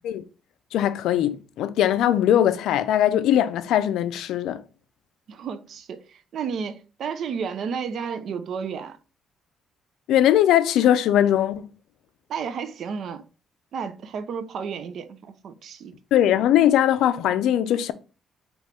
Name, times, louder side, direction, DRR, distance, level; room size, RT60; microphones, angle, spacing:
voice 1, 0.7-4.6 10.1-11.7 16.1-17.9, left 11 dB, 85° left, 0.4 m, -20 dB
voice 2, 5.3-9.0 12.3-13.2 13.7-16.0, right 6 dB, 65° right, 0.6 m, -32 dB
5.2 x 3.1 x 3.3 m
cardioid pair, 90°, 0 cm